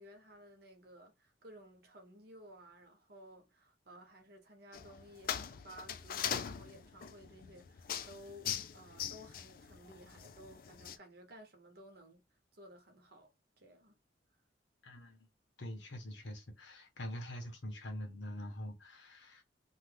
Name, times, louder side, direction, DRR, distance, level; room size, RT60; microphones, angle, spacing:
voice 1, 0.0-12.2 12.5-14.0, equal, 60° right, 1.0 m, -56 dB
sound 1, 4.7-11.0, left 8 dB, 50° left, 0.4 m, -41 dB
voice 2, 14.8-15.3 15.6-19.4, left 1 dB, 90° left, 1.0 m, -44 dB
2.8 x 2.3 x 3.2 m
head